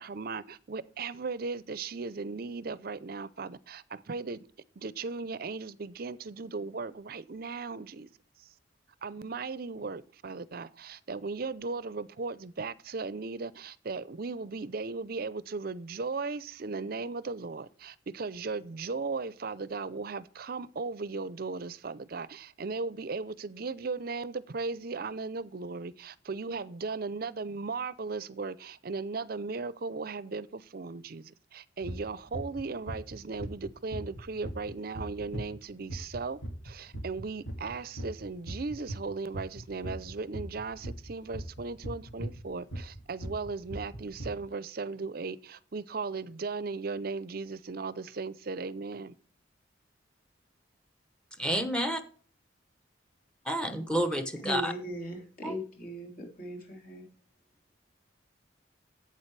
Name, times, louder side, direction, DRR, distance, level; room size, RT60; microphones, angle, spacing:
voice 1, 0.0-4.4 4.8-8.1 8.4-8.5 9.0-36.4 36.6-49.1, right 4 dB, 50° right, 0.6 m, -37 dB
sound 1, 31.8-32.0 32.3-32.6 32.9-39.1 39.3-44.3, right 1 dB, 75° left, 2.5 m, -38 dB
voice 2, 51.4-52.0 53.5-54.7 55.4-55.5, equal, 5° left, 1.0 m, -29 dB
voice 3, 54.4-57.1, equal, 50° left, 3.9 m, -38 dB
11.5 x 8.6 x 3.3 m
head